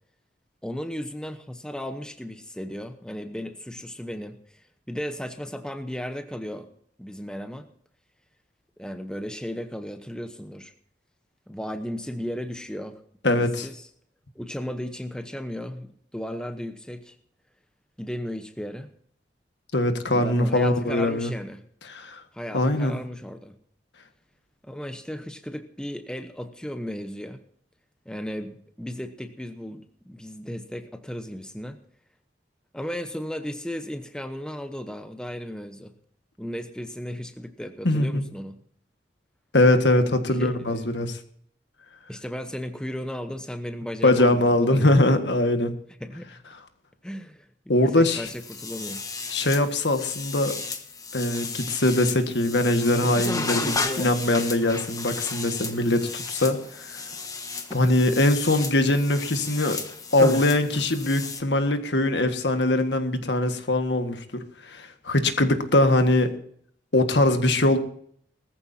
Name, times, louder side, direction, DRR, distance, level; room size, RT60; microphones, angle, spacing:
voice 1, 0.6-6.7 7.0-7.6 8.8-10.7 11.5-13.0 13.3-13.9 14.3-17.1 18.0-18.9 20.1-21.6 22.3-23.6 24.6-27.4 28.1-31.8 32.7-35.9 36.4-38.6 40.4-40.6 42.1-45.2 46.0-46.4 47.0-49.0, equal, 5° left, 8 dB, 0.9 m, -35 dB
voice 2, 13.2-13.7 19.7-21.3 21.9-22.2 22.5-23.0 37.8-38.2 39.5-41.2 44.0-45.7 47.7-48.3 49.3-50.6 51.1-57.0 57.7-59.8 60.1-66.3 66.9-67.8, left 1 dB, 70° left, 7 dB, 1.7 m, -22 dB
sound 1, 48.3-61.4, left 3 dB, 20° left, 1.4 m, -33 dB
20.0 x 14.5 x 2.8 m, 0.63 s
head